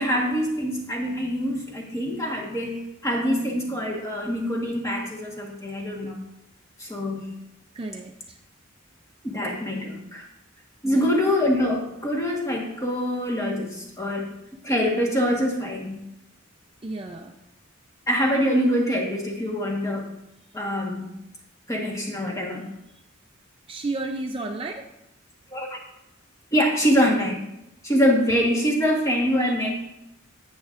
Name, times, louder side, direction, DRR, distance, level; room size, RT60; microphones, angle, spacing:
voice 1, 0.0-6.1 6.8-7.3 9.2-10.3 10.8-14.3 14.6-16.0 18.1-20.1 20.5-21.1 21.7-22.6 25.5-25.8 26.5-27.4 27.8-29.7, equal, 15° left, -1 dB, 1.3 m, -24 dB
voice 2, 7.7-8.4 10.8-11.1 16.8-17.3 23.7-24.8, right 2 dB, 25° right, 3 dB, 0.4 m, -32 dB
10.5 x 8.2 x 2.5 m, 0.87 s
head